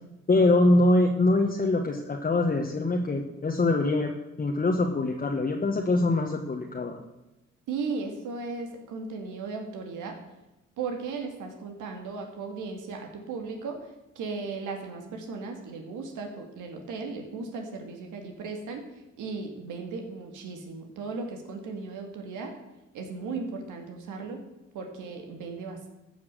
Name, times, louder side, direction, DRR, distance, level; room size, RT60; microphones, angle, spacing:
voice 1, 0.3-7.0, left 2 dB, 30° left, 1 dB, 1.4 m, -24 dB
voice 2, 7.7-10.2 10.8-18.9 19.2-22.5 22.9-24.4 24.7-25.9, right 4 dB, 85° right, 3 dB, 2.4 m, -36 dB
14.0 x 6.1 x 7.7 m, 0.98 s
cardioid pair, 90°, 30 cm